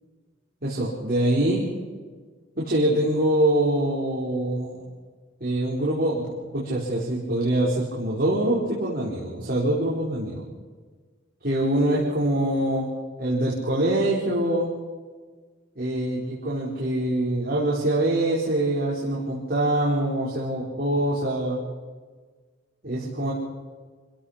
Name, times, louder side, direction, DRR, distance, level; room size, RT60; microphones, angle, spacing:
voice 1, 0.6-1.6 2.6-4.8 5.4-10.4 11.4-12.9 13.2-14.7 15.8-21.6 22.8-23.3, right 1 dB, 50° right, -5 dB, 4.8 m, -24 dB
28.0 x 17.0 x 6.0 m, 1.4 s
head